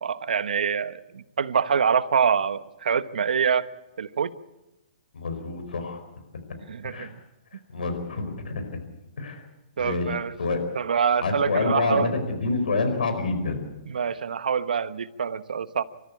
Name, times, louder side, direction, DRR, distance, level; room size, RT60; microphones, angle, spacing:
voice 1, 0.0-3.6 4.0-4.3 6.7-7.1 9.8-10.3 10.7-12.1 13.9-15.8, right 6 dB, 80° right, 13 dB, 1.2 m, -25 dB
voice 2, 5.1-6.0 6.8-7.1 7.5-8.6 9.2-9.4 9.8-10.6 11.2-13.6, left 3 dB, 85° left, 7 dB, 4.7 m, -27 dB
27.0 x 13.5 x 8.6 m, 1.0 s
hypercardioid pair, 140°, 5 cm